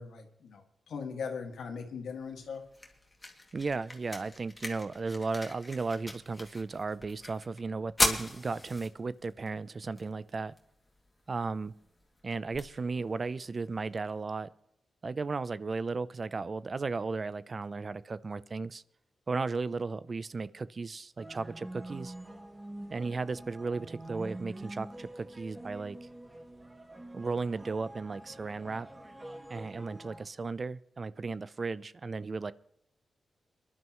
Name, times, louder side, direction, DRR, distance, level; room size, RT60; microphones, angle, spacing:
voice 1, 0.0-2.6, left 5 dB, 85° left, 4 dB, 1.9 m, -39 dB
sound 1, 2.2-14.2, left 2 dB, 20° left, 2.3 m, -39 dB
voice 2, 3.5-10.5 11.3-11.7 12.2-14.5 15.0-18.8 19.3-22.1 22.9-26.0 27.1-28.9 29.5-32.5, right 4 dB, 45° right, 17 dB, 0.5 m, -35 dB
sound 2, 21.2-30.2, right 1 dB, 20° right, 1.8 m, -46 dB
24.0 x 11.0 x 3.1 m, 0.77 s
cardioid pair, 65°, 0 cm